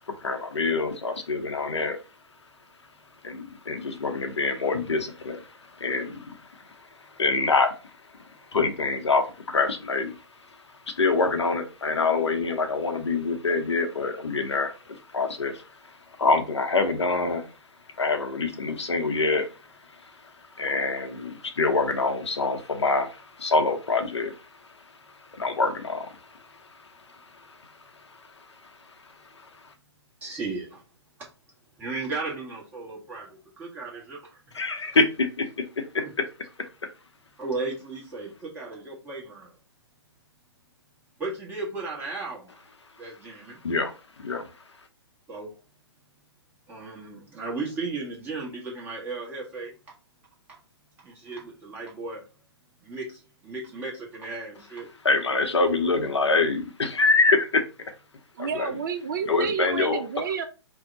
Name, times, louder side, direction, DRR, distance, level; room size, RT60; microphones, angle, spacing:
voice 1, 0.1-2.0 3.2-6.4 7.2-7.8 8.5-10.1 11.0-15.9 16.2-17.4 18.0-19.5 20.6-24.4 25.3-26.2 34.5-36.2 43.6-43.9 44.2-44.5 55.0-57.6 58.4-58.8 59.3-60.0, left 3 dB, 80° left, 0.7 m, -25 dB
voice 2, 30.2-30.8 31.8-34.6 37.4-39.5 41.2-42.6 43.0-43.6 45.3-45.5 46.7-49.7 51.0-52.2 52.8-54.9, right 3 dB, 10° right, 1.1 m, -35 dB
voice 3, 58.3-60.4, right 6 dB, 45° right, 0.4 m, -30 dB
2.6 x 2.1 x 3.8 m
figure-of-eight pair, 130°, 15 cm